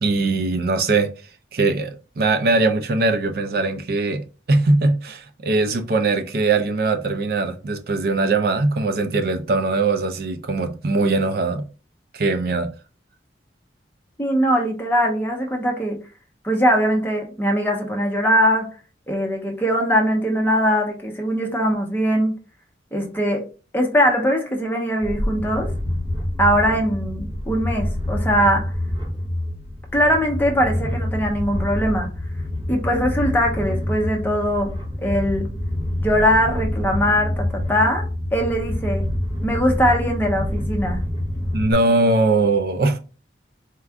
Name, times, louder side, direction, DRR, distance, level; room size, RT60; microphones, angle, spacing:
voice 1, 0.0-1.1 1.5-4.2 4.5-11.6 12.1-12.7 41.5-43.0, right 3 dB, 55° right, 0.4 m, -21 dB
voice 2, 14.2-16.0 16.4-18.7 19.1-22.3 22.9-23.5 23.7-25.7 26.4-28.7 29.9-32.1 32.7-34.8 35.0-35.5 36.0-38.0 38.3-39.1 39.4-41.0, equal, 10° left, 0.8 m, -21 dB
sound 1, 25.0-41.7, left 1 dB, 25° right, 0.8 m, -27 dB
4.4 x 2.4 x 3.4 m
head